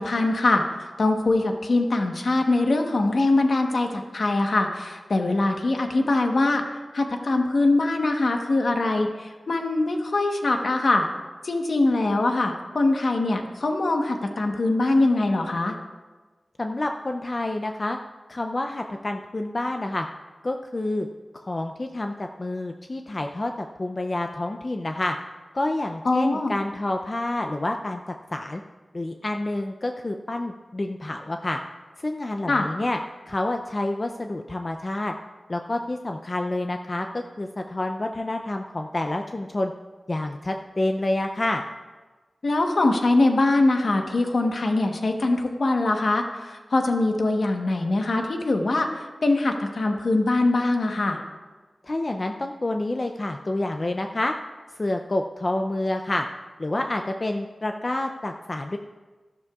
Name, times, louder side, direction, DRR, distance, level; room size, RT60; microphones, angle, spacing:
voice 1, 0.0-6.6 6.9-11.1 11.4-15.8 26.0-26.5 32.5-32.7 42.4-51.2, left 2 dB, 65° left, 3 dB, 1.1 m, -23 dB
voice 2, 16.6-18.0 18.3-20.1 20.4-21.1 21.5-25.2 25.5-28.6 28.9-31.6 32.0-33.0 33.3-35.1 35.5-39.7 40.1-41.6 51.8-54.3 54.8-56.3 56.6-58.8, left 2 dB, 35° left, 4 dB, 0.5 m, -28 dB
13.5 x 12.0 x 2.4 m, 1.3 s
wide cardioid pair, 105°, 0 cm